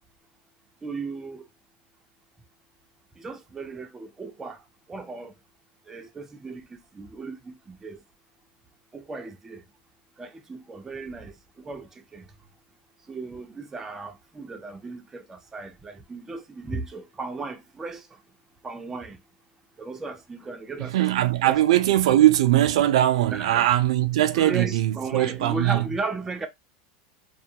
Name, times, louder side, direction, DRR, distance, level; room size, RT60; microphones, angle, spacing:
voice 1, 0.8-1.4 3.2-4.6 4.9-5.3 5.9-8.0 8.9-9.6 10.2-12.3 13.1-18.1 18.6-19.2 19.8-21.1 21.4-21.6 23.3-23.7 24.3-26.5, right 3 dB, 15° right, 0.4 m, -36 dB
voice 2, 20.9-25.8, right 13 dB, 80° right, 0.3 m, -20 dB
2.3 x 2.2 x 2.7 m
supercardioid pair, 140°, 3 cm